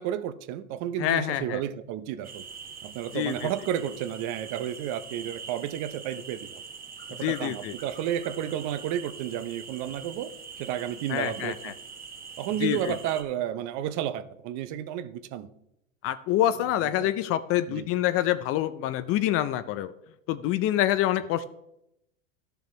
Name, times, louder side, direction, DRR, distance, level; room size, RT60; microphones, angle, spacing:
voice 1, 0.0-2.5 2.8-6.6 7.1-10.3 10.6-11.7 12.4-15.5 16.8-17.1 17.7-17.9, right 10 dB, 45° right, 0.7 m, -32 dB
voice 2, 1.0-1.6 3.1-3.5 7.2-7.7 11.1-11.7 12.6-12.9 16.0-19.9 20.3-21.5, left 13 dB, 35° left, 0.4 m, -26 dB
sound 1, 2.2-13.2, right 5 dB, 20° right, 1.2 m, -44 dB
12.5 x 6.7 x 3.1 m
hypercardioid pair, 105°, 41 cm